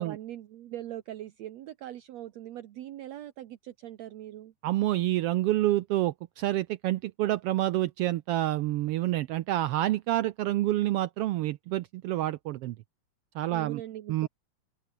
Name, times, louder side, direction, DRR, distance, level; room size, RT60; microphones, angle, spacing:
voice 1, 0.0-4.5 13.5-14.3, right 13 dB, 70° right, 2.2 m, -41 dB
voice 2, 4.6-12.8 13.3-13.8 14.1-14.3, right 15 dB, 85° right, 1.3 m, -28 dB
open air
omnidirectional pair, 3.3 m